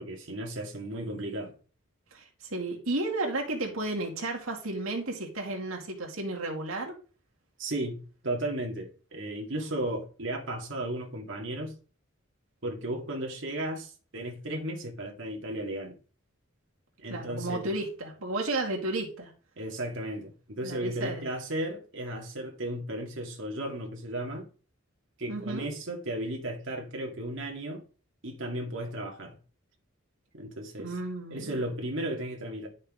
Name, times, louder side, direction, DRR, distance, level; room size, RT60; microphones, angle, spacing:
voice 1, 0.0-1.5 7.6-8.0 8.2-11.7 12.6-15.9 17.0-17.6 19.6-24.5 25.2-27.8 28.2-29.4 30.4-31.0 31.3-32.7, right 1 dB, 60° right, 2.1 m, -35 dB
voice 2, 2.1-6.9 17.1-19.3 20.6-21.2 25.3-25.7 30.8-31.6, right 2 dB, 80° right, 2.3 m, -33 dB
11.0 x 6.4 x 3.7 m
head